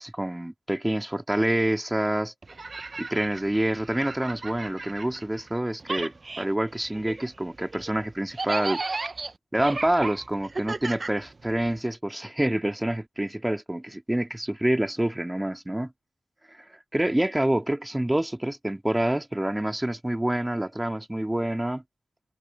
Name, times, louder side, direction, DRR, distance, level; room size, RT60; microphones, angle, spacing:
voice 1, 0.0-2.3 3.0-8.8 9.5-15.9 16.5-21.8, right 1 dB, 15° right, 1.9 m, -27 dB
sound 1, 2.4-5.5 5.8-11.8, right 3 dB, 45° right, 0.6 m, -35 dB
cardioid pair, 60°, 0 cm